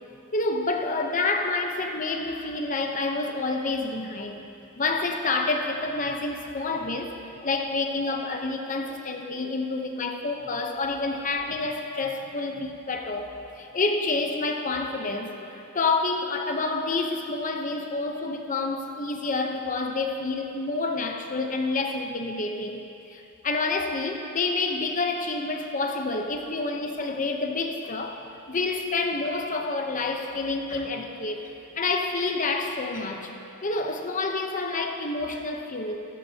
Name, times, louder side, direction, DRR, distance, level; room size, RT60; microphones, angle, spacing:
voice 1, 0.3-4.4 4.8-7.1 7.4-13.3 13.6-22.8 23.1-33.3 33.6-36.0, left 3 dB, 35° left, 3 dB, 0.8 m, -28 dB
15.0 x 12.5 x 2.9 m, 2.8 s
head